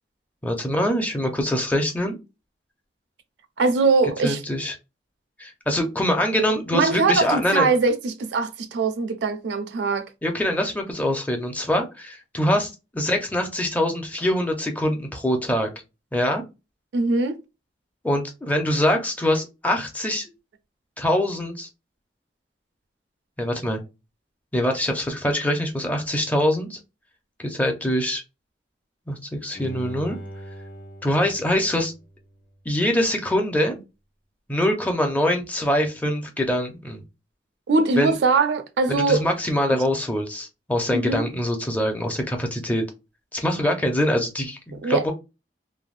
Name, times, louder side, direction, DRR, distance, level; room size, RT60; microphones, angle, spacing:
voice 1, 0.4-2.2 4.2-4.7 5.4-7.7 10.2-15.7 16.1-16.4 18.0-20.3 21.0-21.7 23.4-23.8 24.5-26.8 27.4-28.2 29.1-30.2 31.0-31.9 32.7-33.8 34.5-37.0 37.9-38.1 38.9-42.8 43.3-45.1, left 1 dB, 10° left, 0.5 m, -24 dB
voice 2, 3.6-4.4 6.7-10.1 16.9-17.4 37.7-39.3 40.9-41.3 44.8-45.0, right 3 dB, 75° right, 0.4 m, -21 dB
Bowed string instrument, 29.5-32.6 33.1-33.2, right 1 dB, 75° left, 0.8 m, -40 dB
3.2 x 2.1 x 2.4 m
head